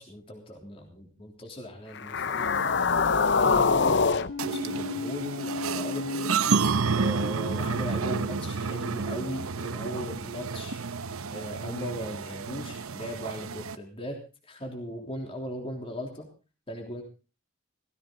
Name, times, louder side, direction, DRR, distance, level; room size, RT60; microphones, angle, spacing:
voice 1, 0.0-4.1 4.4-6.3 6.9-10.8 11.3-14.2 14.4-16.3 16.7-17.0, equal, 25° left, 1 dB, 3.3 m, -38 dB
sound 1, 2.0-6.3, left 5 dB, 55° left, 0.7 m, -26 dB
sound 2, 4.4-13.8, right 5 dB, 85° right, 0.9 m, -30 dB
16.5 x 16.0 x 3.9 m, 0.34 s
head